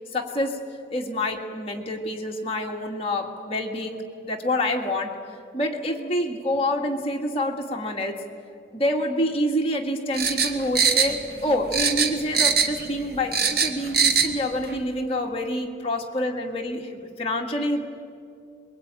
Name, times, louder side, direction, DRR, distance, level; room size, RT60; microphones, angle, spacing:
voice 1, 0.1-0.6 0.9-5.2 5.5-8.2 8.7-17.9, left 1 dB, 30° left, 1 dB, 2.0 m, -27 dB
sound 1, 10.1-11.4 11.7-12.8 13.1-14.3 14.6-14.7, right 6 dB, 50° right, 1.6 m, -21 dB
23.5 x 22.0 x 9.0 m, 2.4 s
head